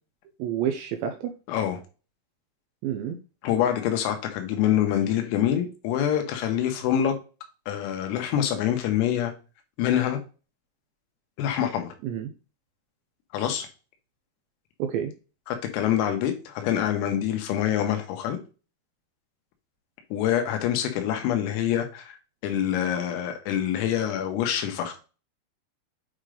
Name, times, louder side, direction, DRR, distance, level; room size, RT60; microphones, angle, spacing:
voice 1, 0.4-1.3 2.8-3.2 12.0-12.3 14.8-15.1, right 9 dB, 90° right, 5 dB, 2.6 m, -29 dB
voice 2, 1.5-1.8 3.4-7.2 7.7-9.3 9.8-10.2 11.4-11.9 13.3-13.7 15.5-18.4 20.1-22.2 22.4-25.0, left 10 dB, 90° left, 4 dB, 3.8 m, -25 dB
8.9 x 3.3 x 3.7 m, 0.33 s
omnidirectional pair, 5.9 m